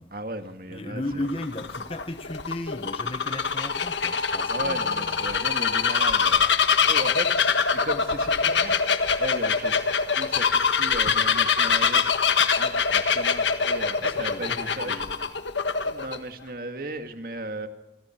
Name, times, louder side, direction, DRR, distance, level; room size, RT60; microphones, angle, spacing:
voice 1, 0.1-1.3 4.5-6.5 6.9-8.8 9.2-12.0 12.5-15.0 15.8-17.7, right 1 dB, 55° right, 7 dB, 2.1 m, -36 dB
voice 2, 0.7-5.3 14.1-15.2, left 1 dB, 30° left, 7 dB, 1.4 m, -35 dB
Bird vocalization bird call bird song, 1.1-16.2, left 6 dB, 90° left, 1.5 m, -24 dB
26.5 x 25.5 x 4.6 m, 0.96 s
head